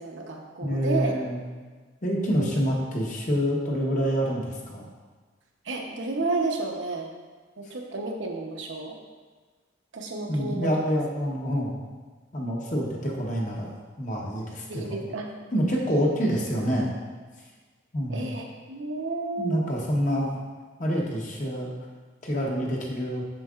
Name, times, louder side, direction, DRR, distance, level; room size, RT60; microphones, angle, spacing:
voice 1, 0.0-1.2 2.2-2.5 5.6-7.1 7.6-9.0 9.9-10.7 14.7-15.3 18.1-19.7, right 3 dB, 75° right, 1 dB, 0.9 m, -31 dB
voice 2, 0.6-1.4 2.0-4.9 10.3-11.8 12.3-15.0 15.5-16.9 17.9-18.3 19.4-20.4 20.8-21.7 22.2-23.2, equal, 40° left, -2 dB, 1.0 m, -27 dB
7.5 x 6.5 x 2.4 m, 1.4 s
head